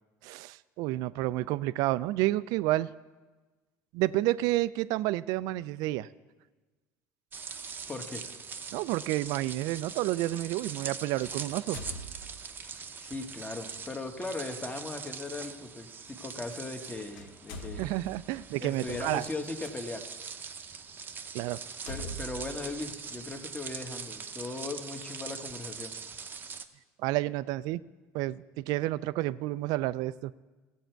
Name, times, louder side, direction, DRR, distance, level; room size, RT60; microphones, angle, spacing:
voice 1, 0.2-2.9 3.9-6.1 8.7-11.8 17.8-19.2 21.3-21.6 27.0-27.8 28.1-30.3, right 17 dB, 70° right, 17 dB, 0.3 m, -30 dB
sound 1, 7.3-26.7, right 6 dB, 30° right, 0.7 m, -42 dB
voice 2, 7.9-8.2 12.6-18.0 18.6-20.1 21.9-25.9, left 3 dB, 20° left, 5 dB, 1.2 m, -38 dB
sound 2, 9.2-9.3 11.2-12.7 13.6-13.8 15.7-15.8 16.7-16.9 17.1-19.7 20.4-20.5 21.0-21.1 21.7-23.5, right 1 dB, 85° left, 1.0 m, -44 dB
15.5 x 7.8 x 4.5 m, 1.3 s
supercardioid pair, 100°, 7 cm